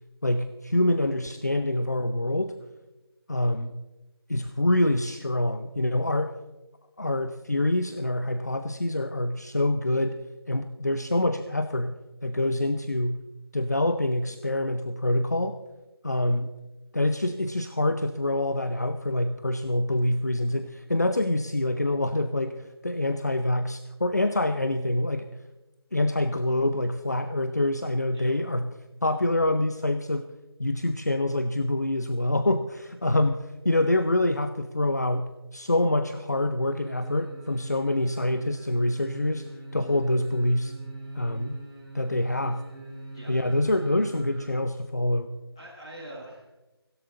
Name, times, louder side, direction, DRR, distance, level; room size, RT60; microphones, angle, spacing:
voice 1, 0.2-2.6 3.3-3.8 4.3-6.3 7.0-10.2 10.5-11.9 12.2-13.2 13.5-15.6 16.0-16.5 16.9-25.3 25.9-28.7 29.0-30.3 30.6-39.4 39.7-40.7 41.1-41.6 41.9-42.6 43.3-45.3, left 1 dB, 40° left, 10 dB, 0.6 m, -26 dB
sound 1, 36.7-44.5 44.9-45.0, right 2 dB, 10° right, 2.1 m, -42 dB
voice 2, 45.5-46.6, right 1 dB, 10° left, -8 dB, 4.4 m, -44 dB
17.5 x 16.5 x 3.9 m, 1.0 s
figure-of-eight pair, 180°, 14 cm